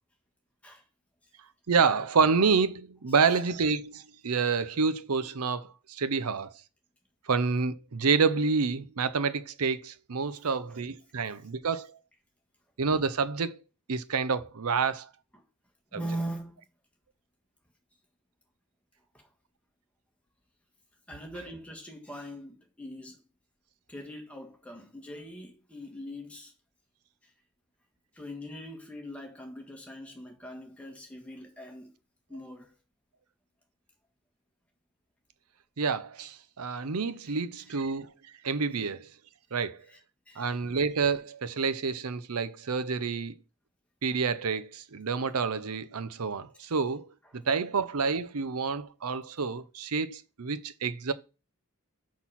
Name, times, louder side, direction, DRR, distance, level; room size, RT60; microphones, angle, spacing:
voice 1, 1.7-6.5 7.3-11.9 12.8-13.6 13.9-15.1 15.9-16.0 35.8-38.1 38.4-39.1 39.5-39.8 40.4-43.4 44.0-47.1 47.3-51.1, right 5 dB, 85° right, 0.7 m, -28 dB
voice 2, 15.9-16.6 19.1-19.3 21.1-23.2 23.9-26.5 27.2-27.3 28.1-31.9 32.3-32.7 37.2-37.3 37.7-37.8 39.9-40.0 40.3-40.5 46.6-46.7, equal, 5° left, 1.6 m, -41 dB
6.2 x 6.2 x 5.8 m
head